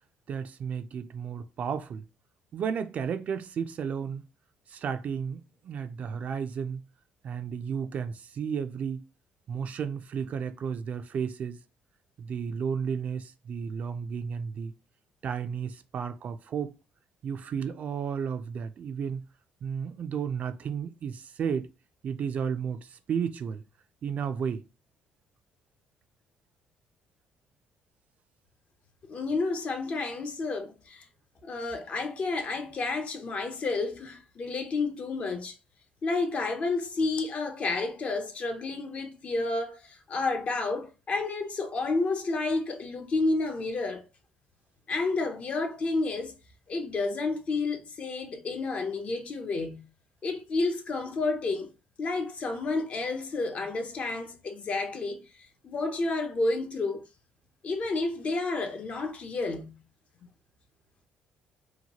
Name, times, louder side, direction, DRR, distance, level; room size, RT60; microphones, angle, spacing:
voice 1, 0.3-2.0 2.5-4.2 4.7-6.8 7.2-9.0 9.5-11.6 12.2-14.7 15.2-16.7 17.2-19.2 19.6-21.7 22.0-23.6 24.0-24.7, right 7 dB, 50° right, 0.3 m, -33 dB
voice 2, 29.1-31.1 31.4-35.6 36.0-44.1 44.9-46.3 46.7-49.8 50.2-51.7 52.0-55.3 55.6-57.0 57.6-59.8, left 3 dB, 45° left, 0.5 m, -30 dB
2.8 x 2.2 x 2.8 m
cardioid pair, 105°, 3 cm